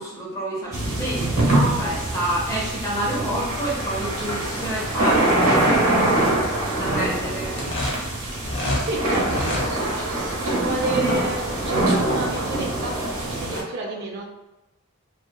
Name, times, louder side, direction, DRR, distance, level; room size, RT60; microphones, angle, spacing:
voice 1, 0.0-6.2 6.8-7.6 9.6-10.1 13.5-13.7, right 1 dB, 15° left, -5 dB, 0.7 m, -28 dB
sound 1, 0.7-13.6, right 1 dB, 85° right, 0.9 m, -24 dB
sound 2, 7.5-8.9 9.2-9.7, left 1 dB, 55° left, 0.8 m, -27 dB
voice 2, 8.8-12.9 13.2-14.3, right 2 dB, 50° right, -1 dB, 0.4 m, -31 dB
2.7 x 2.3 x 2.2 m, 0.99 s
head